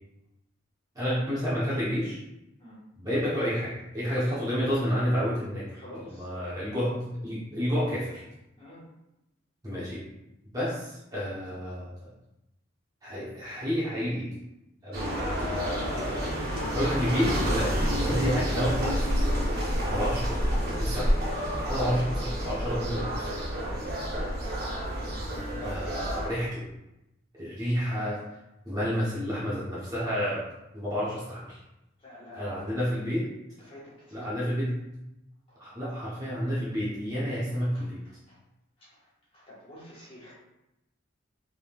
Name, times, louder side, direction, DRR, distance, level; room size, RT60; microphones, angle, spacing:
voice 1, 0.9-2.2 3.0-8.2 9.6-10.0 10.5-11.9 13.0-14.3 14.8-16.2 16.7-19.1 19.9-20.4 20.8-21.1 21.7-23.3 25.1-25.2 25.6-26.6 27.4-28.2 28.6-30.4 30.7-31.6 32.3-33.2 34.1-35.0 35.6-38.0, equal, 15° right, -9 dB, 0.9 m, -30 dB
voice 2, 5.8-6.5 8.5-8.8 23.6-23.9 32.0-32.9 33.6-34.5 35.5-35.6 37.7-37.8 38.3-38.4 38.8-39.0 39.3-40.3, equal, 25° left, -8 dB, 1.3 m, -48 dB
sound 1, 14.9-26.3, equal, 50° right, 0.9 m, -29 dB
3.8 x 3.4 x 2.4 m, 0.90 s
head